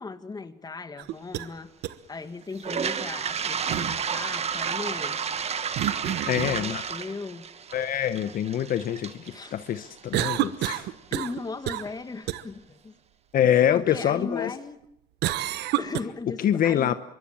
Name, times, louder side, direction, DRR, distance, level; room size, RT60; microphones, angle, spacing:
voice 1, 0.0-1.7 2.1-5.2 6.0-7.5 9.3-9.5 11.1-13.0 13.7-14.8 15.8-16.9, left 3 dB, 25° left, 10 dB, 1.9 m, -37 dB
sound 1, 1.0-1.5 1.8-1.9 3.7-4.0 5.8-6.6 10.1-11.4 11.7-11.9 12.3-12.4 15.2-16.0, right 14 dB, 80° right, 1.2 m, -28 dB
Toilet flush, 2.5-10.5, right 7 dB, 40° right, 1.5 m, -31 dB
voice 2, 6.3-6.8 7.7-10.9 13.3-14.5 16.4-16.9, left 10 dB, 55° left, 11 dB, 1.0 m, -25 dB
25.5 x 23.0 x 7.4 m, 0.78 s
cardioid pair, 110°, 17 cm